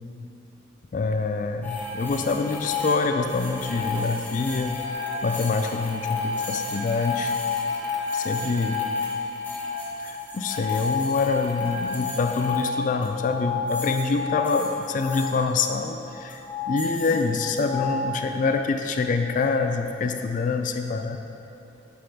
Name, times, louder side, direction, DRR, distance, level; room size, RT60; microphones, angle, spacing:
voice 1, 0.9-4.8 5.2-7.4 8.1-8.8 10.0-21.2, left 4 dB, 45° left, 6 dB, 0.3 m, -26 dB
sound 1, 1.6-15.3 16.1-18.7, left 4 dB, 10° left, 0.8 m, -30 dB
9.5 x 3.9 x 3.4 m, 2.8 s
head